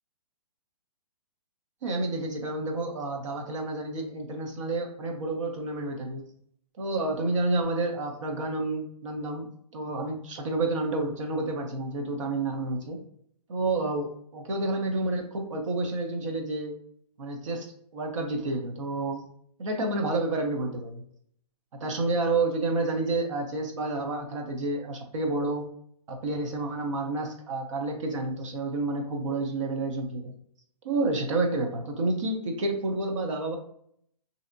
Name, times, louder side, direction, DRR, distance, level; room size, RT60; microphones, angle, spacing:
voice 1, 1.8-6.2 6.8-9.5 9.7-13.0 13.5-16.7 17.2-17.7 17.9-19.2 19.6-21.0 21.8-25.7 26.1-30.3 30.8-33.6, right 2 dB, 50° right, 2 dB, 0.8 m, -29 dB
3.3 x 2.8 x 2.6 m, 0.67 s
hypercardioid pair, 170°, 20 cm